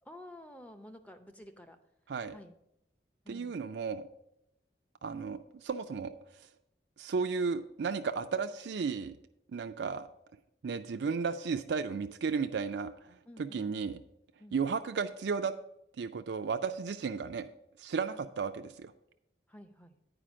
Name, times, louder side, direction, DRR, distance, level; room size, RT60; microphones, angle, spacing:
voice 1, 0.0-1.8 2.3-2.5 3.2-3.6 13.2-13.7 14.4-14.6 18.1-18.3 19.5-20.0, left 1 dB, 10° left, 7 dB, 0.6 m, -51 dB
voice 2, 3.3-4.0 5.0-6.1 7.0-9.2 9.5-10.1 10.6-14.0 14.5-15.5 16.0-17.5 17.8-18.9, right 5 dB, 80° right, 8 dB, 0.4 m, -34 dB
8.8 x 5.0 x 6.1 m, 0.80 s
head